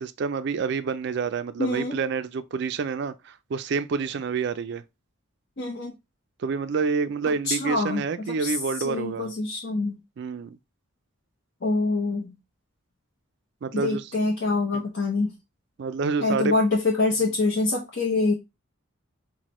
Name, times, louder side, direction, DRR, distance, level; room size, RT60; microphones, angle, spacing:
voice 1, 0.0-4.8 6.4-9.3 10.2-10.6 13.6-14.1 14.7-14.8 15.8-16.5 17.3-17.4, right 5 dB, 50° right, 0.3 m, -28 dB
voice 2, 1.6-2.0 5.6-5.9 7.5-8.0 8.4-8.5 8.8-10.0 11.6-12.3 13.7-15.3 16.2-18.3, left 3 dB, 50° left, 0.7 m, -25 dB
6.0 x 2.1 x 3.0 m
head